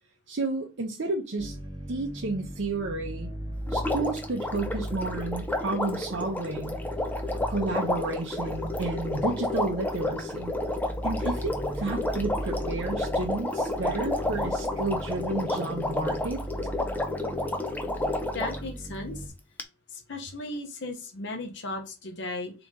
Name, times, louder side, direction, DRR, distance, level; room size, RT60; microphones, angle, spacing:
voice 1, 0.3-1.6 1.9-3.3 3.7-6.8 7.5-10.5 11.0-16.4, right 3 dB, 65° right, 0.6 m, -31 dB
sound 1, 1.4-19.3, right 1 dB, 25° right, 0.8 m, -38 dB
Water, 3.7-18.7 19.6-19.7, left 2 dB, 10° left, 0.4 m, -31 dB
voice 2, 17.1-17.5 18.3-19.3 19.9-22.5, left 2 dB, 60° left, 0.9 m, -36 dB
3.8 x 2.9 x 3.6 m
head